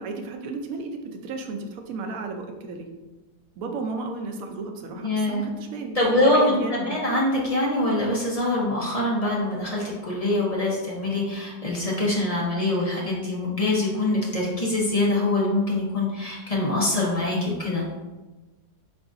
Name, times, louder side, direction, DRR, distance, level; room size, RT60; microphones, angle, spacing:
voice 1, 0.0-2.9 3.6-7.1, right 3 dB, 70° right, 3 dB, 0.9 m, -33 dB
voice 2, 5.0-5.5 5.9-6.6 6.8-17.8, left 2 dB, 40° left, -4 dB, 0.5 m, -24 dB
4.7 x 3.7 x 2.5 m, 1.1 s
omnidirectional pair, 1.7 m